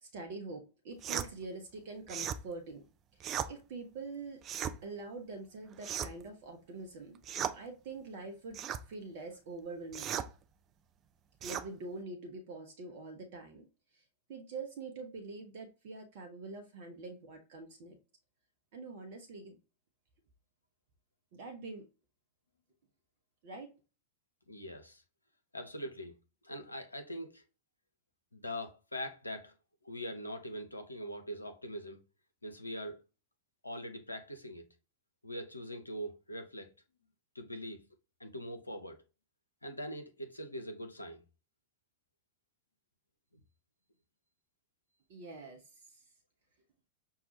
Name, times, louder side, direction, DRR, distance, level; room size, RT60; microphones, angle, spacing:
voice 1, 0.0-2.8 3.1-4.4 4.8-7.2 7.5-8.6 8.9-10.1 11.4-13.7 13.9-14.0 14.3-18.0 18.7-19.6 21.3-21.9 23.4-23.7 45.1-46.0, right 3 dB, 50° right, 0.7 m, -45 dB
sound 1, 1.0-1.3 2.1-2.4 3.2-3.5 4.4-4.8 5.8-6.3 7.2-7.6 8.5-8.8 9.9-10.3 11.4-11.7, right 9 dB, 30° right, 0.4 m, -36 dB
voice 2, 24.5-25.0 25.5-26.2 26.4-27.4 28.3-29.5 29.8-32.0 32.4-33.0 33.6-34.7 35.2-36.7 37.3-37.8 38.2-39.0 39.6-41.2, equal, 85° left, 0.7 m, -42 dB
5.5 x 2.3 x 2.8 m
figure-of-eight pair, 90°, 0 cm